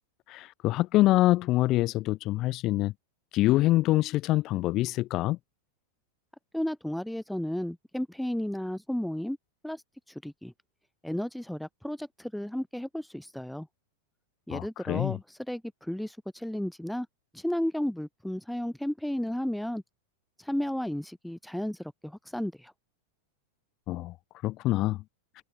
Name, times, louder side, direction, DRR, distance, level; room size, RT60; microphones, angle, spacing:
voice 1, 0.3-2.9 3.3-5.4 14.5-15.2 23.9-24.1 24.4-25.0, left 17 dB, 35° left, 0.3 m, -25 dB
voice 2, 6.5-9.4 9.6-9.8 10.2-10.5 11.0-13.7 14.5-17.1 17.3-19.8 20.4-22.7, left 1 dB, ahead, 0.6 m, -33 dB
figure-of-eight pair, 90°, 0 cm